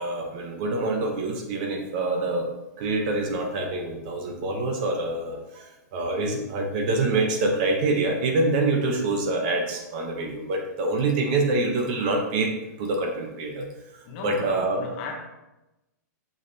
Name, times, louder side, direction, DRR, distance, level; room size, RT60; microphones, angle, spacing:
voice 1, 0.0-2.5 2.8-12.5 12.8-13.7 14.2-14.8, right 2 dB, 30° right, 3 dB, 0.8 m, -26 dB
voice 2, 14.0-15.1, left 4 dB, 30° left, 1 dB, 0.9 m, -36 dB
6.4 x 6.2 x 2.7 m, 0.97 s
hypercardioid pair, 175°, 10 cm